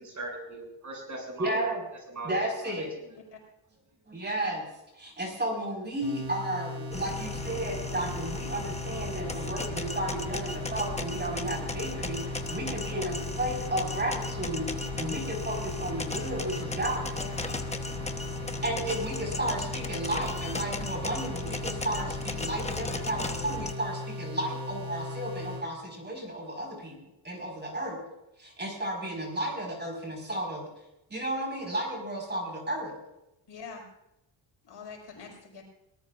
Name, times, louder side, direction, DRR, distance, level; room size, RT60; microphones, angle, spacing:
voice 1, 0.0-1.7 2.1-2.5 2.8-3.1 12.9-13.1, right 2 dB, 40° right, 0 dB, 7.4 m, -39 dB
voice 2, 1.4-1.8 2.2-2.9 4.1-4.7 4.9-17.6 18.6-27.0 27.2-28.0 28.4-30.7 31.1-32.9, right 1 dB, 20° right, 1 dB, 5.1 m, -33 dB
sound 1, 6.0-25.6, left 1 dB, 75° right, 7.5 m, -38 dB
sound 2, 6.9-23.7, left 3 dB, 15° left, 1.1 m, -37 dB
voice 3, 17.1-17.5 33.5-33.8 34.6-35.6, left 5 dB, 60° left, 0 dB, 5.7 m, -44 dB
21.5 x 19.0 x 2.6 m, 0.87 s
cardioid pair, 120°, 47 cm